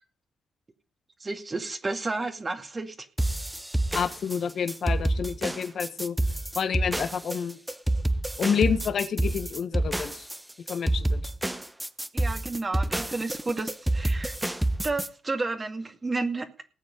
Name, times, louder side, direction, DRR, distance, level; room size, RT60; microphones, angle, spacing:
voice 1, 1.2-3.1 12.1-14.4 14.8-16.7, right 3 dB, 35° right, 5 dB, 2.2 m, -31 dB
sound 1, 3.2-15.1, right 1 dB, 10° right, 1.2 m, -28 dB
voice 2, 3.9-6.2 6.5-7.6 8.4-10.1 10.7-11.2, left 7 dB, 65° left, 11 dB, 1.5 m, -28 dB
18.5 x 7.8 x 5.3 m, 0.37 s
hypercardioid pair, 45°, 0 cm